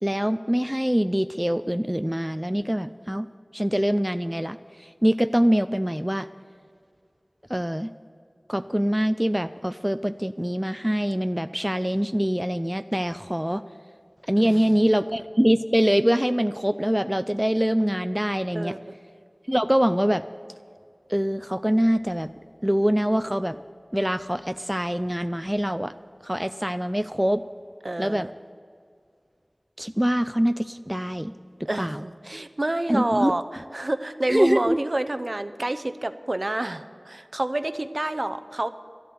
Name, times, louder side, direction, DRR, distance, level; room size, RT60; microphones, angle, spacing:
voice 1, 0.0-3.3 3.5-6.3 7.5-7.9 8.5-13.6 14.3-18.7 19.5-20.2 21.1-22.3 22.6-23.6 23.9-25.9 26.2-27.4 28.0-28.3 29.8-31.3 31.8-32.0 32.9-33.3 34.3-34.8, equal, 10° right, 11 dB, 0.4 m, -24 dB
voice 2, 27.8-28.3 31.7-38.7, right 1 dB, 50° right, 11 dB, 0.7 m, -28 dB
13.0 x 7.8 x 9.3 m, 2.2 s
wide cardioid pair, 45°, 0 cm